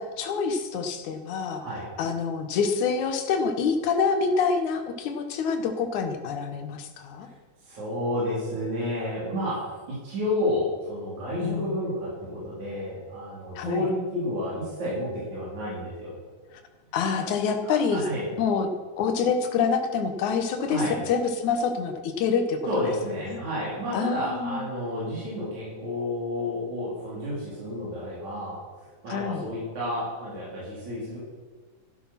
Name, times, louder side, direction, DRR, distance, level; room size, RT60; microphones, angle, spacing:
voice 1, 0.0-1.6 2.0-7.3 11.4-11.7 13.6-13.9 16.9-18.0 18.4-18.7 19.0-22.6 23.3-23.4 23.9-24.6 29.1-29.4, left 5 dB, 75° left, 5 dB, 2.7 m, -26 dB
voice 2, 7.6-16.2 17.2-17.3 17.6-18.3 20.7-21.0 22.7-31.2, left 1 dB, 65° right, -8 dB, 5.7 m, -31 dB
14.5 x 11.5 x 6.0 m, 1.5 s
omnidirectional pair, 3.5 m